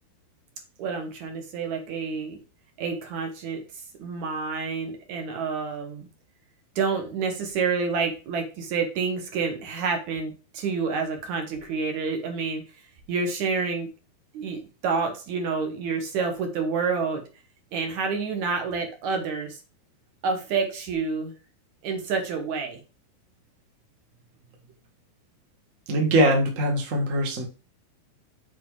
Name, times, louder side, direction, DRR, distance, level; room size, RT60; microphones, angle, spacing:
voice 1, 0.8-2.4 2.8-3.6 4.0-6.0 6.8-12.6 13.1-13.9 14.3-17.2 17.7-19.6 20.2-21.3 21.8-22.8, right 5 dB, 65° right, 4 dB, 2.1 m, -28 dB
voice 2, 25.9-27.4, right 1 dB, 80° right, 1 dB, 0.7 m, -22 dB
7.3 x 4.5 x 4.8 m, 0.33 s
omnidirectional pair, 4.5 m